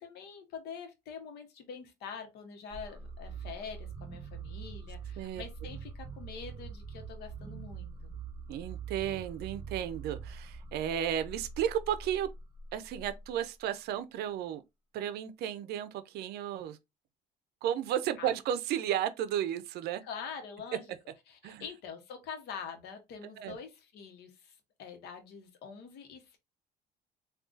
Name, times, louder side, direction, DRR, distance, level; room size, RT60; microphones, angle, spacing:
voice 1, 0.0-8.2 18.2-18.3 20.0-20.8 21.3-26.4, left 6 dB, 75° left, 0.9 m, -45 dB
Realistic Alien Abduction, 2.7-13.6, right 5 dB, 25° right, 0.6 m, -44 dB
voice 2, 8.5-12.3 12.7-14.6 14.9-16.8 17.6-20.0 21.4-21.6 23.4-23.6, right 10 dB, 75° right, 0.5 m, -33 dB
3.7 x 2.3 x 2.5 m
cardioid pair, 110°, 17 cm